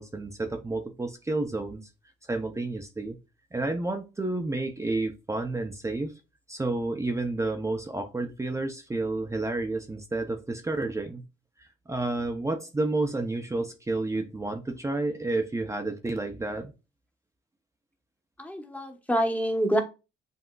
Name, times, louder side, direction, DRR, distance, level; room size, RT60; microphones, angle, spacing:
voice 1, 0.0-1.8 2.3-3.2 3.5-6.1 6.5-11.2 11.6-16.7, right 2 dB, 15° right, 0.6 m, -30 dB
voice 2, 18.4-19.8, equal, 5° left, 1.1 m, -26 dB
7.6 x 2.8 x 2.4 m
cardioid pair, 90°, 20 cm